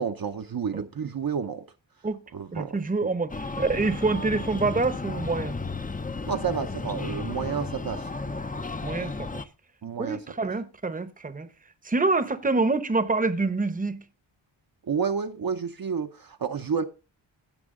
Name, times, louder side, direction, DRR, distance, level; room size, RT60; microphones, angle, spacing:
voice 1, 0.0-1.6 2.3-3.1 6.3-8.1 9.8-10.5 14.9-16.8, right 6 dB, 50° right, 0.7 m, -30 dB
voice 2, 2.5-5.5 8.8-9.4 10.0-11.5 11.8-14.0, right 3 dB, 20° right, 0.8 m, -26 dB
Breathing, 3.3-9.4, left 3 dB, 20° left, 0.5 m, -33 dB
16.0 x 6.1 x 3.6 m
wide cardioid pair, 110°, 47 cm